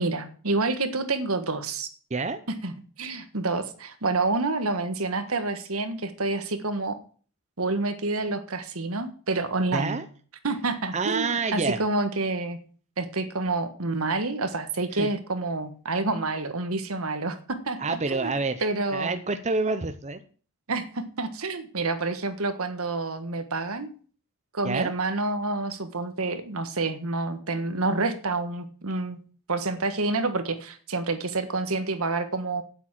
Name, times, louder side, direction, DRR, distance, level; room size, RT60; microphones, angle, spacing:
voice 1, 0.0-1.9 2.6-2.7 3.0-7.0 7.6-10.0 10.4-12.6 13.0-18.3 18.6-19.2 20.7-23.9 24.5-29.2 29.5-32.6, right 3 dB, 75° right, 9 dB, 1.5 m, -28 dB
voice 2, 9.7-10.0 10.9-11.8 14.9-15.1 17.8-18.6 18.9-20.2 24.6-24.9, right 3 dB, 30° right, 9 dB, 0.7 m, -27 dB
9.0 x 8.2 x 7.5 m, 0.42 s
head